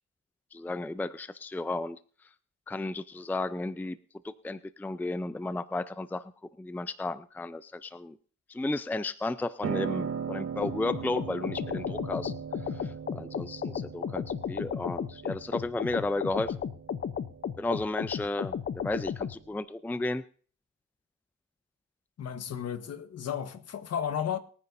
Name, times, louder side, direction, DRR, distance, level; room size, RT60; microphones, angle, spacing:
voice 1, 0.5-2.0 2.7-4.0 4.2-6.2 6.6-8.2 8.5-12.3 12.7-16.5 17.6-20.2, left 2 dB, 5° left, 0.5 m, -33 dB
Piano, 9.6-19.6, right 7 dB, 50° right, 1.3 m, -39 dB
sound 1, 10.6-19.3, left 8 dB, 40° left, 0.7 m, -34 dB
voice 2, 22.2-24.4, left 8 dB, 55° left, 1.4 m, -33 dB
24.0 x 9.7 x 2.7 m
cardioid pair, 90°, 30 cm